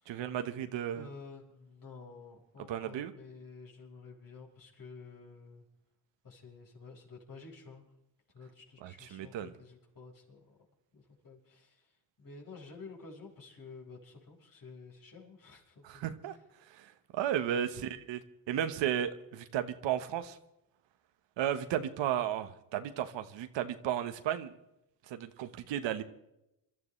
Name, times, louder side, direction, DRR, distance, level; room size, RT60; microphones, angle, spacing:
voice 1, 0.1-1.1 2.7-3.1 8.8-9.5 15.8-16.4 16.7-18.2 18.5-20.4 21.4-24.5 25.1-26.0, right 10 dB, 75° right, 9 dB, 1.3 m, -34 dB
voice 2, 0.9-5.6 6.2-7.9 8.3-10.6 10.9-11.9 12.2-16.1 17.5-18.0, left 4 dB, 45° left, -1 dB, 5.1 m, -51 dB
26.5 x 12.5 x 3.3 m, 0.87 s
cardioid pair, 100°, 44 cm